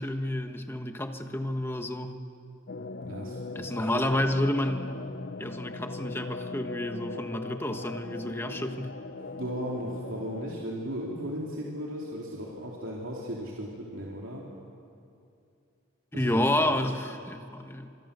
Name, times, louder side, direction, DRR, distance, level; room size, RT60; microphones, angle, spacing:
voice 1, 0.0-2.2 3.5-4.9 5.4-8.9 16.1-17.9, left 1 dB, 10° left, 5 dB, 1.4 m, -30 dB
sound 1, 2.7-10.6, left 3 dB, 50° left, 0.7 m, -39 dB
voice 2, 3.0-4.0 9.3-14.5 16.1-16.7, equal, 75° right, -4 dB, 3.4 m, -36 dB
30.0 x 27.0 x 6.9 m, 2.6 s
head